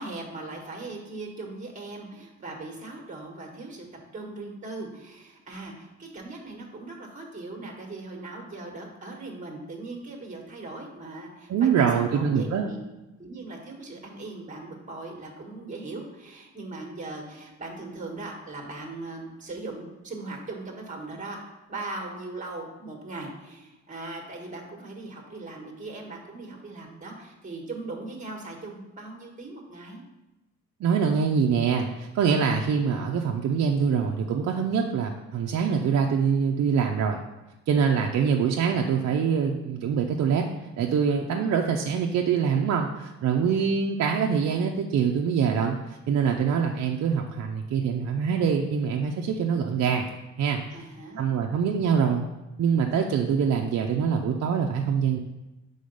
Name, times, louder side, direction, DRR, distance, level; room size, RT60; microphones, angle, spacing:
voice 1, 0.0-3.9 4.1-12.8 13.2-21.4 21.7-30.0 43.4-43.6 50.7-51.3, right 2 dB, 25° right, 1 dB, 1.3 m, -39 dB
voice 2, 11.5-12.7 30.8-37.2 37.7-40.5 40.8-50.1 50.4-50.6 51.2-52.2 52.6-55.2, right 6 dB, 60° right, 1 dB, 0.6 m, -24 dB
5.0 x 3.9 x 5.3 m, 1.0 s
cardioid pair, 90°, 30 cm